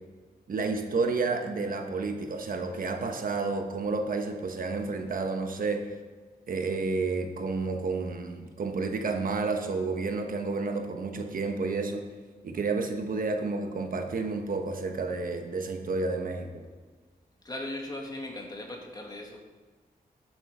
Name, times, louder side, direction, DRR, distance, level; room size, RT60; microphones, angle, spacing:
voice 1, 0.5-5.8 6.5-12.0 12.4-16.6, right 3 dB, 65° right, 5 dB, 1.2 m, -30 dB
voice 2, 17.4-19.4, left 1 dB, 25° left, 1 dB, 1.9 m, -38 dB
11.5 x 7.9 x 5.0 m, 1.4 s
wide cardioid pair, 115°, 16 cm